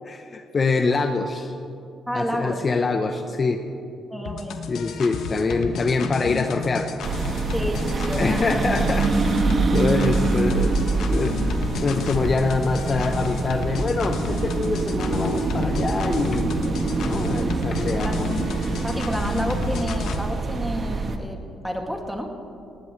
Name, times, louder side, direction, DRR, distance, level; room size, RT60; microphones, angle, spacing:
voice 1, 0.0-1.5 2.1-3.6 4.7-6.9 7.3-7.4 8.1-10.8 11.1-11.4 11.8-16.7 17.0-18.3, left 3 dB, 40° left, 6 dB, 0.9 m, -25 dB
voice 2, 2.1-2.7 4.1-4.6 7.5-8.7 18.0-18.2 18.8-22.3, equal, ahead, 2 dB, 2.3 m, -30 dB
sound 1, 4.3-20.2, left 5 dB, 70° left, 1.2 m, -32 dB
sound 2, 7.0-21.2, right 3 dB, 45° right, 1.3 m, -25 dB
19.0 x 18.0 x 3.3 m, 2.7 s
supercardioid pair, 65°, 0 cm